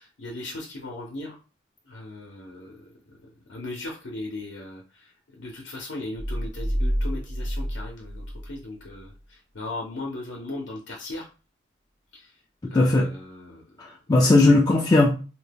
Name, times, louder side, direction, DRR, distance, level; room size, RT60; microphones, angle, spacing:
voice 1, 0.0-1.4 1.9-2.9 3.5-11.3 12.1-12.3 12.7-13.6 14.2-14.3, left 2 dB, 75° left, -1 dB, 0.6 m, -38 dB
sound 1, 6.1-9.1, equal, 60° right, 0.6 m, -29 dB
voice 2, 12.7-13.1 13.8-15.1, left 2 dB, 20° left, -1 dB, 0.3 m, -18 dB
2.7 x 2.2 x 3.3 m, 0.34 s
head